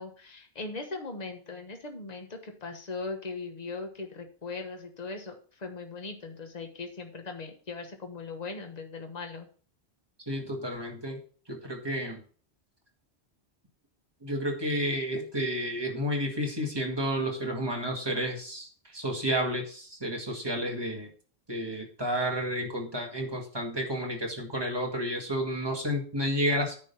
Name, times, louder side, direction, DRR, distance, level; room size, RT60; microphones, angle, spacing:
voice 1, 0.0-9.5, left 3 dB, 40° left, 5 dB, 1.4 m, -39 dB
voice 2, 10.3-11.2 11.5-12.2 14.2-21.1 21.5-26.8, equal, 20° right, 0 dB, 2.0 m, -31 dB
9.8 x 4.0 x 6.9 m, 0.42 s
omnidirectional pair, 1.1 m